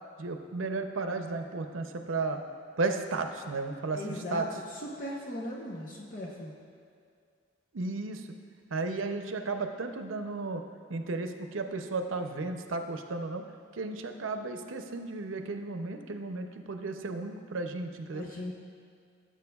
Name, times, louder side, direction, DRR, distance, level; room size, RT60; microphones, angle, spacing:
voice 1, 0.2-2.4 2.8-4.5 7.7-8.3 8.7-10.6 10.9-13.4 13.7-18.2, right 3 dB, 90° right, 6 dB, 0.6 m, -34 dB
voice 2, 3.9-6.5 18.1-18.5, left 1 dB, 45° left, -3 dB, 0.9 m, -38 dB
16.0 x 7.5 x 2.3 m, 2.2 s
head